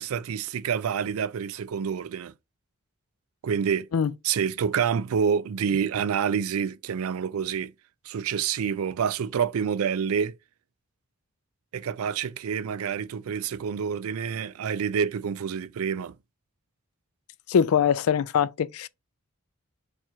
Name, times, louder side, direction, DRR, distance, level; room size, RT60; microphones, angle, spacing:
voice 1, 0.0-2.3 3.4-3.9 4.2-7.7 8.1-10.3 11.7-16.1, right 7 dB, 75° right, 0.4 m, -27 dB
voice 2, 17.5-18.9, left 7 dB, 80° left, 0.4 m, -22 dB
4.3 x 2.5 x 4.4 m
head